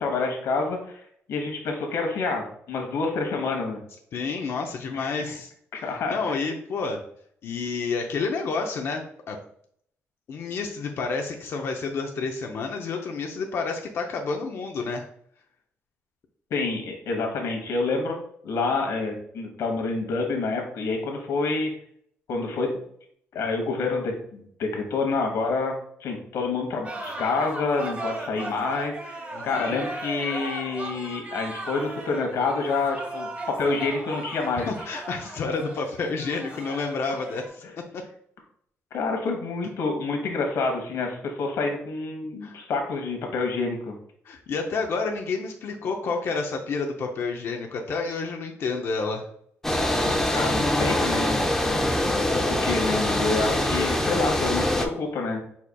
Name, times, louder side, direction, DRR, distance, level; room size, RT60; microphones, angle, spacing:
voice 1, 0.0-3.8 4.9-5.3 5.7-6.5 16.5-18.2 18.4-21.7 22.3-22.8 23.3-25.7 26.0-34.7 38.9-44.0 50.3-55.4, left 3 dB, 80° left, 2 dB, 1.2 m, -28 dB
voice 2, 4.1-7.0 7.4-9.4 10.3-15.0 29.3-29.8 34.6-37.6 37.9-38.0 42.4-42.6 44.2-49.3, left 4 dB, 60° left, 2 dB, 0.6 m, -30 dB
sound 1, 26.8-37.5, right 2 dB, 30° right, 1.2 m, -37 dB
sound 2, 49.6-54.8, left 1 dB, 10° left, 0.5 m, -24 dB
4.7 x 4.2 x 2.3 m, 0.65 s
cardioid pair, 125°, 5 cm